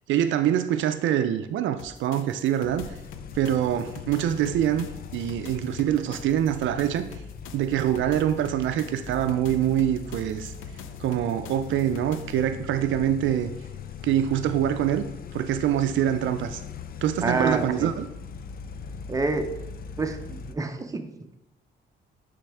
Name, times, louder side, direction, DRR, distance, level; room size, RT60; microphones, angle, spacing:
voice 1, 0.1-2.9 3.3-4.9 5.1-7.1 7.5-10.5 11.0-13.5 14.0-15.1 15.3-16.6 17.0-18.1, right 10 dB, 75° right, 10 dB, 0.4 m, -25 dB
sound 1, 1.8-12.4, left 7 dB, 90° left, 0.6 m, -46 dB
sound 2, 2.6-20.5, left 7 dB, 50° left, 0.5 m, -40 dB
voice 2, 17.2-17.9 19.1-19.5 20.0-21.1, right 3 dB, 15° right, 5 dB, 0.7 m, -27 dB
9.7 x 3.3 x 3.4 m, 0.88 s
cardioid pair, 90°, 20 cm